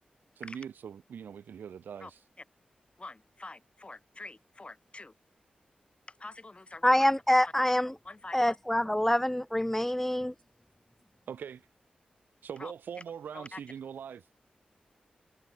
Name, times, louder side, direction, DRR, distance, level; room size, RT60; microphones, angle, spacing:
voice 1, 0.4-2.2 11.3-11.6 12.4-14.2, right 8 dB, 90° right, 1.7 m, -42 dB
voice 2, 3.0-5.1 6.2-7.1 7.4-7.5 8.0-8.6 12.6-12.7 13.3-13.6, left 2 dB, 40° left, 6.8 m, -45 dB
voice 3, 6.8-7.9 8.3-10.3, left 1 dB, 10° left, 0.4 m, -25 dB
cardioid pair, 40°, 3 cm